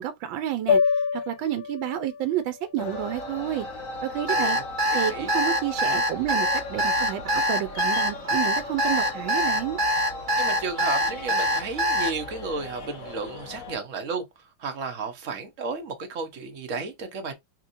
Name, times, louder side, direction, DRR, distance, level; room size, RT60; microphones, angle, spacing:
voice 1, 0.0-3.7 4.0-4.6 4.9-9.8, right 11 dB, 80° right, 1.3 m, -30 dB
sound 1, 0.7-5.0, left 6 dB, 80° left, 1.4 m, -29 dB
sound 2, 2.8-13.8, left 2 dB, 50° left, 1.1 m, -37 dB
Alarm, 4.3-12.1, equal, 35° right, 1.7 m, -23 dB
voice 2, 4.3-5.3 10.4-14.2 14.6-17.3, right 4 dB, 50° right, 1.0 m, -33 dB
3.6 x 2.9 x 2.5 m
omnidirectional pair, 2.1 m